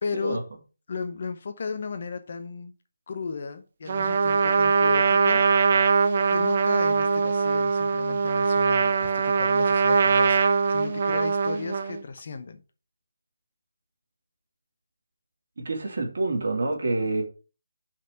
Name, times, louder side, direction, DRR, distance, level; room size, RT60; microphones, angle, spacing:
voice 1, 0.0-0.4 0.9-2.7 3.1-5.4 6.3-12.6, left 5 dB, 40° left, 1.0 m, -35 dB
Trumpet, 3.9-12.0, right 5 dB, 35° right, 0.8 m, -22 dB
voice 2, 15.6-17.2, right 2 dB, 50° right, 3.0 m, -27 dB
5.6 x 5.1 x 6.5 m
hypercardioid pair, 175°, 0 cm